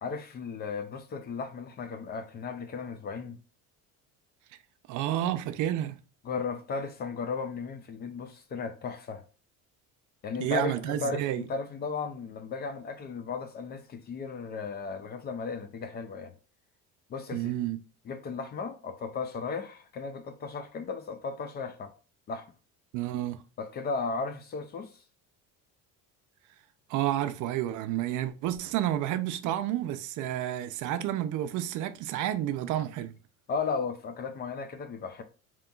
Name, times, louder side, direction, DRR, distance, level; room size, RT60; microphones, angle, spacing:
voice 1, 0.0-3.4 6.2-9.2 10.2-16.3 17.1-17.5 18.1-21.9 22.3-22.5 23.6-24.9 33.5-35.2, left 4 dB, 30° left, 0.4 m, -35 dB
voice 2, 4.9-6.0 10.4-11.4 17.3-17.8 22.9-23.4 26.9-33.1, right 12 dB, 60° right, 0.5 m, -30 dB
5.2 x 2.9 x 2.3 m
cardioid pair, 155°, 33 cm